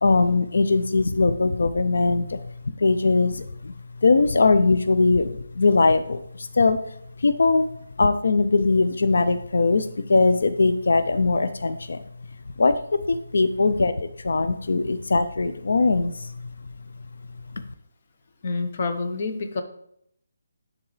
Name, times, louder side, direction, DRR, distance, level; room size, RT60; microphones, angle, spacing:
voice 1, 0.0-3.7 4.0-6.8 7.2-7.7 8.0-12.0 12.6-16.5 17.5-17.6, left 3 dB, 75° left, 10 dB, 0.4 m, -21 dB
voice 2, 18.4-19.6, left 3 dB, 35° left, 6 dB, 0.6 m, -27 dB
11.0 x 3.8 x 3.2 m, 0.72 s
hypercardioid pair, 175°, 0 cm